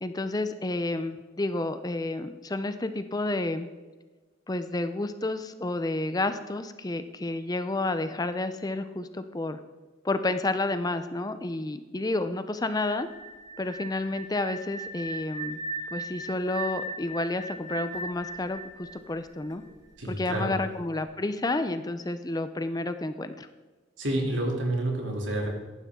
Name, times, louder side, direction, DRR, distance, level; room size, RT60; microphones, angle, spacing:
voice 1, 0.0-3.7 4.5-9.6 10.0-13.1 13.6-15.6 15.9-19.6 20.1-23.5, left 2 dB, 20° left, 10 dB, 0.5 m, -30 dB
sound 1, 12.8-19.7, right 2 dB, 20° right, 1.6 m, -38 dB
voice 2, 20.0-20.6 24.0-25.5, right 1 dB, 75° right, 0 dB, 2.9 m, -29 dB
15.0 x 11.0 x 3.7 m, 1.3 s
head